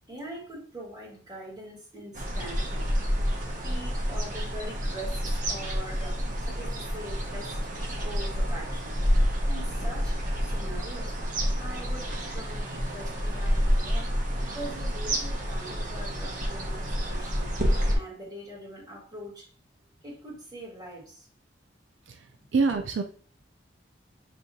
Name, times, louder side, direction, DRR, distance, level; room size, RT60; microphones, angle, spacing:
voice 1, 0.1-2.9 3.6-7.7 8.0-11.1 11.6-14.1 14.4-19.5 20.0-21.3, right 1 dB, 20° right, -5 dB, 1.7 m, -43 dB
sound 1, 2.1-18.0, equal, 45° right, 0.8 m, -29 dB
voice 2, 22.1-23.0, right 4 dB, 75° right, 6 dB, 0.4 m, -27 dB
5.9 x 2.8 x 2.6 m, 0.42 s
head